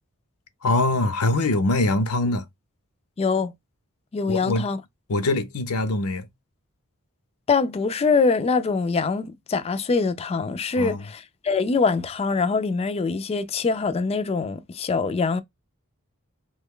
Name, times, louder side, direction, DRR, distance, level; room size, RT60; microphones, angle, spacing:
voice 1, 0.6-2.5 4.3-4.7 5.1-6.3 10.8-11.0, left 2 dB, 80° left, 0.6 m, -23 dB
voice 2, 3.2-3.5 4.1-4.8 7.5-15.4, left 4 dB, 30° left, 0.3 m, -24 dB
3.0 x 2.2 x 3.6 m
head